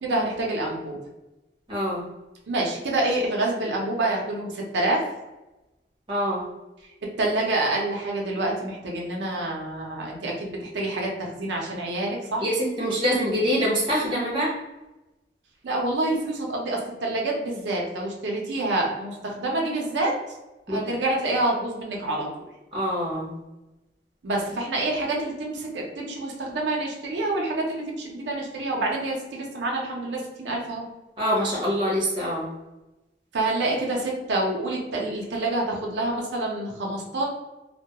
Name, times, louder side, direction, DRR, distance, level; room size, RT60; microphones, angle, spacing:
voice 1, 0.0-1.0 2.5-5.0 7.2-12.4 15.6-20.1 20.7-22.3 24.2-30.8 33.3-37.3, right 2 dB, 85° right, -1 dB, 0.5 m, -27 dB
voice 2, 1.7-2.0 6.1-6.5 12.4-14.5 20.7-20.8 22.7-23.4 31.2-32.5, equal, 30° right, -5 dB, 0.7 m, -25 dB
2.2 x 2.1 x 2.8 m, 1.0 s
head